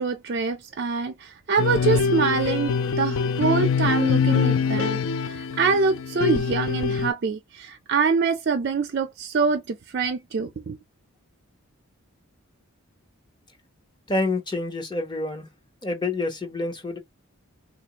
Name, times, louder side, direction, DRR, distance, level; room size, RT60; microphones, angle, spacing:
voice 1, 0.0-10.8, right 5 dB, 45° right, 0.4 m, -25 dB
sound 1, 1.6-7.1, left 6 dB, 65° left, 0.4 m, -24 dB
voice 2, 14.1-15.5 15.8-17.0, left 2 dB, 20° left, 0.8 m, -27 dB
3.8 x 2.5 x 2.8 m
head